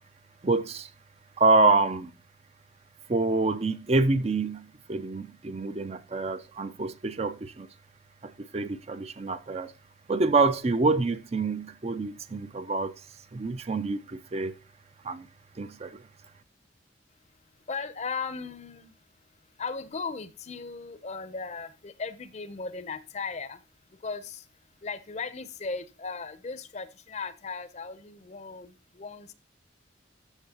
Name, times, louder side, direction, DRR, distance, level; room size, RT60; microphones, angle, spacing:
voice 1, 0.4-0.9 1.4-2.1 3.1-7.7 8.2-9.7 10.1-13.0 13.3-14.6 15.0-15.3 15.6-16.0, right 3 dB, 35° right, 0.5 m, -26 dB
voice 2, 17.7-19.0 19.6-23.6 23.9-24.5 24.8-29.3, left 4 dB, 40° left, 0.7 m, -37 dB
14.0 x 6.3 x 2.9 m
head